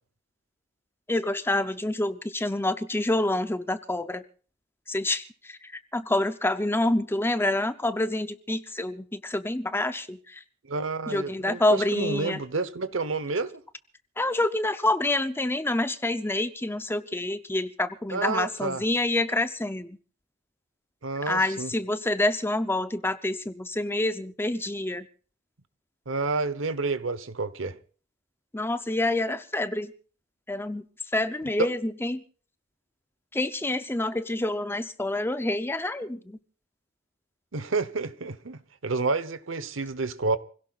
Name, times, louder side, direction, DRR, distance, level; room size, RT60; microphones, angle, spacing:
voice 1, 1.1-4.2 4.9-10.4 11.1-12.4 14.2-20.0 21.3-25.1 28.5-29.9 30.5-30.8 31.1-32.2 33.3-36.4, left 2 dB, 10° left, 0.6 m, -27 dB
voice 2, 10.7-13.6 18.1-18.8 21.0-21.7 26.1-27.8 37.5-40.4, right 3 dB, 80° right, 1.0 m, -29 dB
28.5 x 16.5 x 2.5 m
head